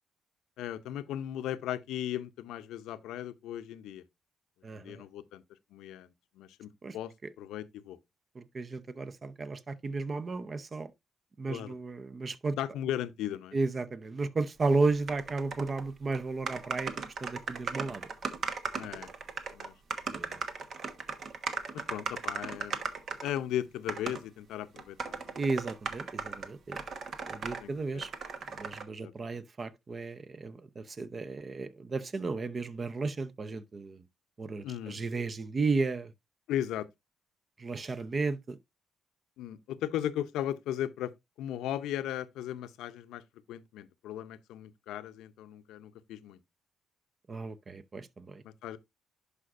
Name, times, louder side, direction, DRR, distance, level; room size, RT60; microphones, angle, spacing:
voice 1, 0.6-4.0 4.7-5.4 5.7-7.1 7.4-8.0 11.5-11.7 12.6-13.6 18.8-19.1 19.5-19.7 21.7-22.8 23.2-25.3 27.6-28.0 29.0-29.4 34.6-35.0 36.5-36.9 39.4-41.1 41.4-43.2 43.5-46.4 48.4-48.8, left 11 dB, 90° left, 0.6 m, -37 dB
voice 2, 4.6-5.0 6.8-7.0 8.3-10.9 11.4-12.6 13.5-18.1 20.1-20.4 25.3-26.8 27.3-28.1 28.6-34.0 34.4-36.1 37.6-38.6 47.3-48.4, right 3 dB, 35° right, 0.7 m, -34 dB
sound 1, 15.1-15.9 16.1-16.2 16.5-23.4 23.9-24.2 24.8-27.6 28.0-28.8, right 5 dB, 55° right, 1.1 m, -37 dB
11.0 x 4.9 x 2.5 m
cardioid pair, 90°, 0 cm